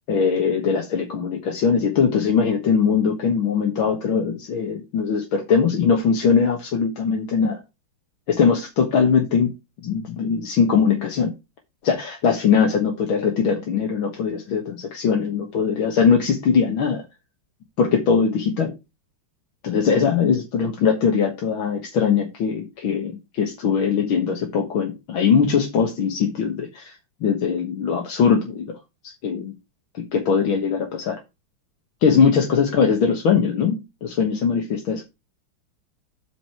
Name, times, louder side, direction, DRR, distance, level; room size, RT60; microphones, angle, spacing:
voice 1, 0.1-7.6 8.3-9.5 9.8-11.3 11.8-17.0 17.8-18.7 19.6-28.7 29.0-29.5 30.0-31.2 32.0-35.0, left 6 dB, 70° left, 2.2 m, -21 dB
7.7 x 5.2 x 5.9 m
omnidirectional pair, 2.3 m